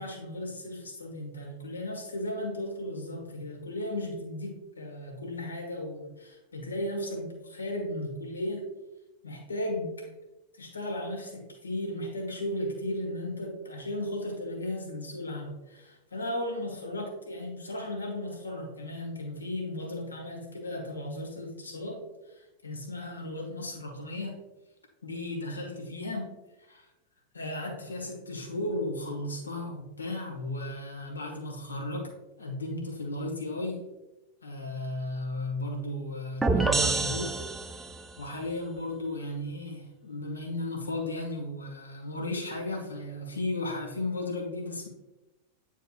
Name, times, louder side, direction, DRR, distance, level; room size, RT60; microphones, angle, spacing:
voice 1, 0.0-8.7 9.2-10.1 10.5-24.4 25.0-26.3 26.6-26.9 27.3-32.1 32.4-33.8 34.4-37.4 37.6-37.9 38.2-44.9, left 1 dB, 75° left, 1 dB, 1.5 m, -35 dB
sound 1, 36.4-38.1, right 3 dB, 5° right, 0.5 m, -27 dB
9.1 x 4.5 x 2.5 m, 1.0 s
figure-of-eight pair, 90°, 0 cm